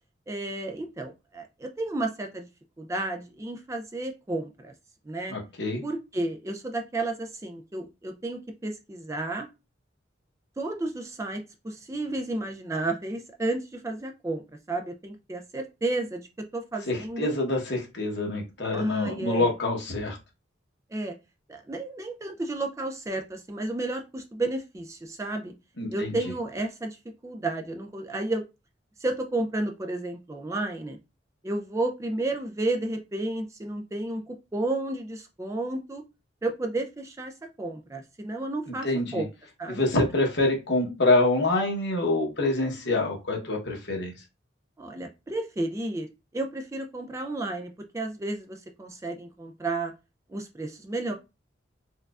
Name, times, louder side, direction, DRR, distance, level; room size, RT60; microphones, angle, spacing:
voice 1, 0.3-2.5 2.8-4.7 5.1-5.3 5.8-9.5 10.6-14.4 14.7-16.2 16.5-17.3 18.7-19.5 20.9-21.1 21.5-25.5 25.9-27.0 27.2-28.4 29.0-31.0 31.4-36.0 36.4-38.9 39.1-39.3 39.6-39.8 44.8-46.1 46.3-49.9 50.3-51.1, right 2 dB, 15° right, 4 dB, 0.3 m, -32 dB
voice 2, 5.3-5.8 16.8-20.2 25.8-26.2 38.7-39.2 39.7-44.1, left 2 dB, 65° left, 1 dB, 1.0 m, -26 dB
4.5 x 2.3 x 2.4 m, 0.26 s
head